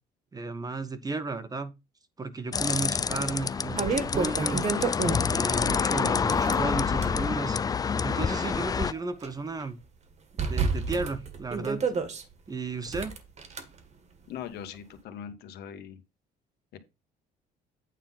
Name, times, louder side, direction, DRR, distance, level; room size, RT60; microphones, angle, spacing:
voice 1, 0.3-1.7 2.2-4.6 5.3-7.6 8.0-9.8 10.4-11.9 12.5-13.1, right 3 dB, 20° right, 1.1 m, -34 dB
sound 1, 2.5-8.9, left 6 dB, 20° left, 0.4 m, -27 dB
sound 2, 2.8-2.9 3.4-5.5 6.2-7.2 7.8-9.3 9.6-9.7 10.4-12.2 12.9-13.6, right 4 dB, 40° right, 1.8 m, -30 dB
voice 2, 14.3-16.0 16.7-16.8, left 9 dB, 75° left, 1.5 m, -41 dB
9.1 x 3.9 x 5.8 m
cardioid pair, 110°, 17 cm